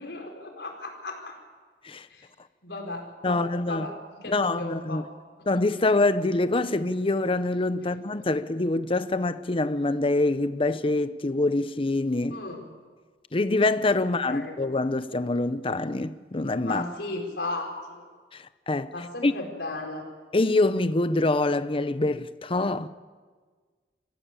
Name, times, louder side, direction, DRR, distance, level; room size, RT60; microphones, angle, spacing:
voice 1, 0.0-1.4 2.1-2.3 2.6-5.0 7.8-8.0 12.3-12.6 14.3-14.5 16.6-18.0 18.9-20.0, left 2 dB, 75° left, 4.7 m, -35 dB
voice 2, 3.2-3.9 4.2-5.0 5.5-12.4 13.3-16.8 18.3-18.9 19.2-19.3 20.3-22.9, left 2 dB, 30° left, 0.7 m, -25 dB
25.0 x 15.5 x 8.8 m
head